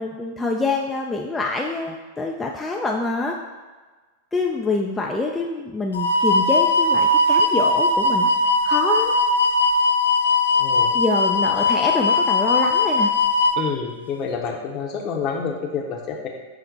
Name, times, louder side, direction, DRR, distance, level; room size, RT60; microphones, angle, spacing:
voice 1, 0.0-3.4 4.3-8.3 8.6-9.2 10.9-13.1, left 3 dB, 10° left, -1 dB, 0.4 m, -25 dB
sound 1, 5.9-13.6, left 2 dB, 85° left, 0.4 m, -19 dB
voice 2, 10.6-10.9 13.6-16.3, left 6 dB, 40° left, 1 dB, 0.7 m, -28 dB
5.8 x 2.1 x 4.0 m, 1.3 s
hypercardioid pair, 95°, 0 cm